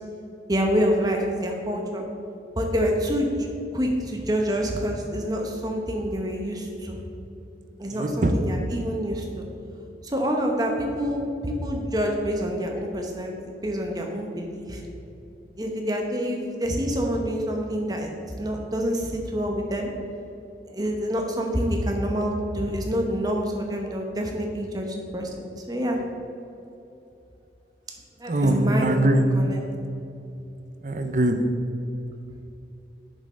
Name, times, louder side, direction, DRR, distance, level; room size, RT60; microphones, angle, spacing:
voice 1, 0.5-2.0 2.6-3.4 3.7-7.0 7.8-9.5 10.0-13.3 13.6-14.8 15.6-18.1 18.4-19.9 20.7-26.0 28.2-29.0 29.3-29.6, equal, 20° right, 1 dB, 0.9 m, -27 dB
voice 2, 7.9-8.3 28.3-29.2 30.8-31.5, right 1 dB, 45° right, 6 dB, 0.6 m, -22 dB
6.8 x 5.5 x 5.3 m, 2.8 s
head